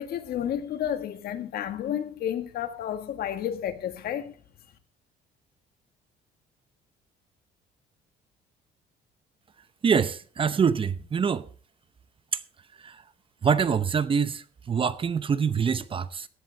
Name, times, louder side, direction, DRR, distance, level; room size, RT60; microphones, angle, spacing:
voice 1, 0.0-4.4, left 10 dB, 65° left, 1.6 m, -31 dB
voice 2, 9.8-11.5 12.3-12.4 12.8-13.0 13.4-16.3, right 6 dB, 30° right, 0.7 m, -25 dB
15.5 x 10.5 x 3.4 m
cardioid pair, 110°, 17 cm